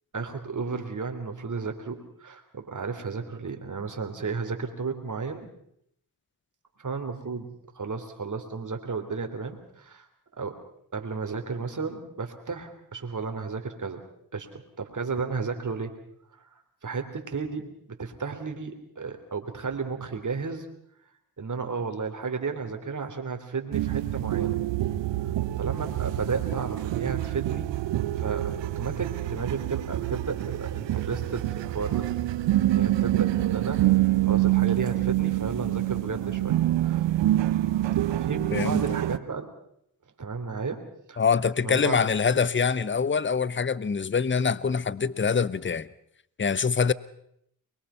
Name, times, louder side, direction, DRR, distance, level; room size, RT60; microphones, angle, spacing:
voice 1, 0.1-5.5 6.8-10.0 10.4-10.6 10.9-14.0 14.3-16.0 16.4-16.5 16.8-20.7 21.4-24.6 25.2-27.7 28.2-32.1 32.6-33.9 34.2-37.0 38.1-39.5 40.2-41.2 41.6-42.0, right 4 dB, 40° right, 3.4 m, -33 dB
sound 1, 23.7-39.2, right 15 dB, 70° right, 0.8 m, -26 dB
voice 2, 38.5-38.8 41.2-45.9 46.4-46.9, left 6 dB, 25° left, 0.9 m, -24 dB
23.0 x 22.0 x 5.7 m
hypercardioid pair, 40°, 45 cm